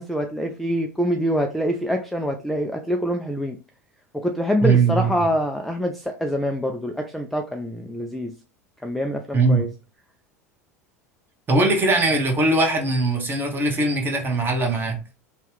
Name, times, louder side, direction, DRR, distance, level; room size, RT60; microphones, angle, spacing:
voice 1, 0.0-3.6 4.1-8.3 8.8-9.7, equal, ahead, 3 dB, 0.4 m, -25 dB
voice 2, 4.6-5.1 9.3-9.6 11.5-15.0, right 3 dB, 25° right, 2 dB, 1.0 m, -20 dB
2.8 x 2.3 x 3.2 m, 0.31 s
figure-of-eight pair, 80°, 8 cm